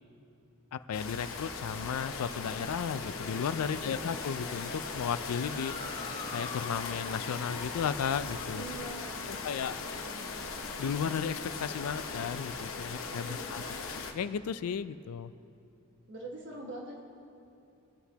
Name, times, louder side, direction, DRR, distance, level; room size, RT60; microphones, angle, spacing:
voice 1, 0.7-6.0 6.3-8.6 9.3-9.8 10.8-13.6 14.1-15.3, left 7 dB, 90° left, 13 dB, 0.4 m, -34 dB
sound 1, 0.9-14.1, left 4 dB, 65° left, 0.9 m, -39 dB
voice 2, 3.7-4.0 8.5-9.7 10.1-10.3 13.2-13.7 16.1-17.0, right 2 dB, 60° right, -1 dB, 1.6 m, -44 dB
Motor vehicle (road) / Siren, 5.1-13.7, left 3 dB, 25° left, 0.7 m, -49 dB
23.0 x 8.0 x 2.8 m, 2.6 s
head